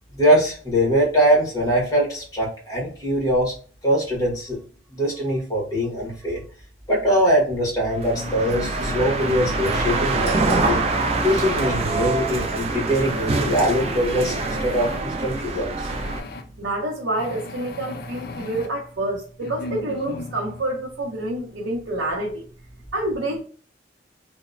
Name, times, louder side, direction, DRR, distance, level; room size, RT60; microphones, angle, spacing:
voice 1, 0.1-3.5 3.8-4.6 4.9-6.4 6.9-10.8 11.2-15.9, equal, 20° left, 1.1 m, -22 dB
sound 1, 8.0-16.2, right 3 dB, 35° right, 0.3 m, -25 dB
sound 2, 8.2-10.1 10.8-12.2 12.9-15.0 15.8-16.4 17.2-18.7 19.4-20.6, left 3 dB, 55° left, 0.3 m, -35 dB
voice 2, 16.6-22.5 22.9-23.4, right 1 dB, 85° right, 0.6 m, -27 dB
2.9 x 2.0 x 2.4 m
head